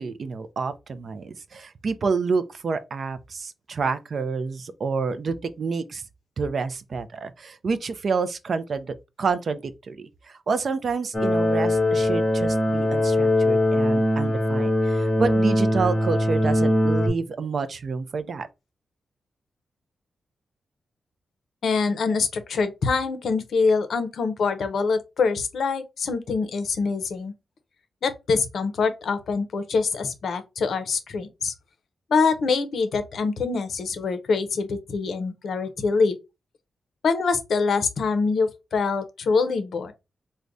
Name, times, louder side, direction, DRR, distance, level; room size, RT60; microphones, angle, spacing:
voice 1, 0.0-6.0 6.4-18.5, right 4 dB, 45° right, 0.4 m, -28 dB
sound 1, 11.1-17.1, left 1 dB, 15° left, 0.6 m, -21 dB
voice 2, 21.6-27.3 28.0-31.5 32.1-36.2 37.0-39.9, left 4 dB, 65° left, 0.6 m, -24 dB
4.6 x 2.1 x 2.5 m
wide cardioid pair, 165°, 0 cm